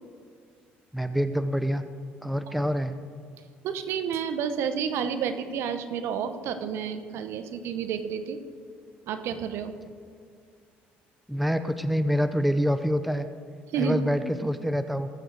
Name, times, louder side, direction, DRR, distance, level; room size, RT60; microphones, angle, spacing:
voice 1, 0.9-1.8 2.2-3.0 11.3-13.3 13.8-15.1, equal, ahead, 10 dB, 0.6 m, -26 dB
voice 2, 3.6-8.4 9.1-9.7 13.7-14.1, right 7 dB, 70° right, 9 dB, 0.9 m, -30 dB
18.5 x 7.9 x 4.0 m, 2.2 s
supercardioid pair, 85°, 5 cm